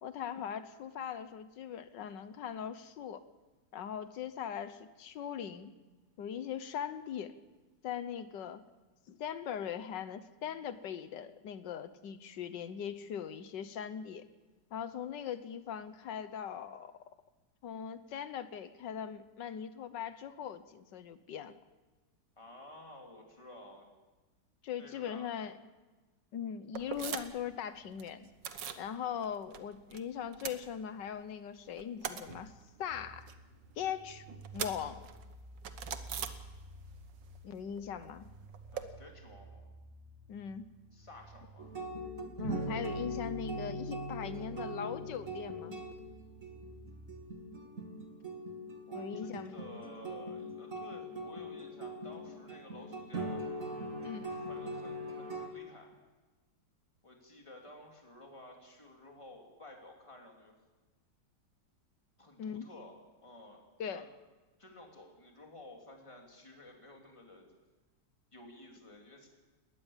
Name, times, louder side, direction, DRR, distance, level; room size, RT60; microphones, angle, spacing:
voice 1, 0.0-3.2 3.7-5.7 6.2-7.4 7.8-8.6 9.1-14.3 14.7-16.9 17.6-21.6 24.6-25.5 26.3-28.3 28.8-32.5 32.8-33.3 33.8-34.2 34.5-35.0 37.4-38.3 40.3-40.6 42.4-45.8 48.9-49.6 54.0-54.3 62.4-62.7 63.8-64.0, left 8 dB, 85° left, 12 dB, 1.6 m, -40 dB
voice 2, 22.4-23.9 24.8-25.3 38.7-39.7 40.9-41.7 48.9-53.4 54.3-55.9 57.0-60.5 62.2-62.9 63.2-63.6 63.9-64.1 64.6-67.5 68.3-69.3, left 1 dB, 15° left, 1 dB, 3.2 m, -53 dB
sound 1, 26.7-27.5 27.8-28.9 29.2-30.0 30.2-31.3 31.6-37.0 37.2-38.8, right 8 dB, 90° right, 1.8 m, -43 dB
sound 2, 32.9-47.2, right 1 dB, 20° right, 1.7 m, -53 dB
sound 3, 41.6-55.5, equal, 50° right, 2.6 m, -41 dB
20.5 x 19.5 x 7.3 m, 1.2 s
omnidirectional pair, 1.9 m